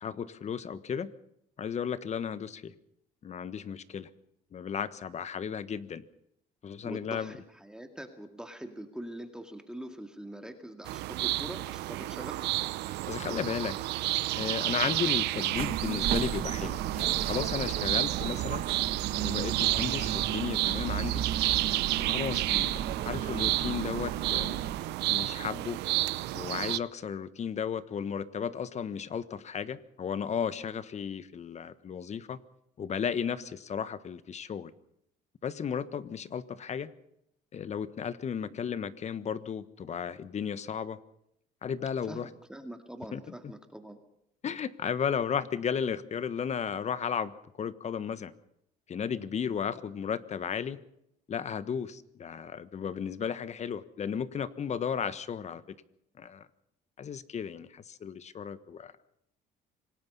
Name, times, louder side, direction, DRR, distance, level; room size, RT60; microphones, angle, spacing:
voice 1, 0.0-1.1 1.6-2.7 3.2-4.1 4.5-6.0 6.6-7.3 13.1-13.8 14.4-18.6 19.2-21.2 22.0-24.6 25.1-25.8 26.3-32.4 32.8-34.7 35.4-36.9 37.5-41.0 41.6-42.3 43.1-43.2 44.4-48.3 48.9-50.8 51.3-55.6 56.2-56.5 57.0-58.9, left 7 dB, 40° left, 14 dB, 1.4 m, -34 dB
voice 2, 6.8-12.4 38.5-38.6 42.1-44.0, right 1 dB, 5° right, 6 dB, 2.2 m, -43 dB
sound 1, 10.9-26.8, right 17 dB, 85° right, 0.7 m, -31 dB
sound 2, 15.5-24.8, right 10 dB, 65° right, 2.0 m, -35 dB
26.0 x 19.0 x 5.5 m, 0.76 s
cardioid pair, 110°, 17 cm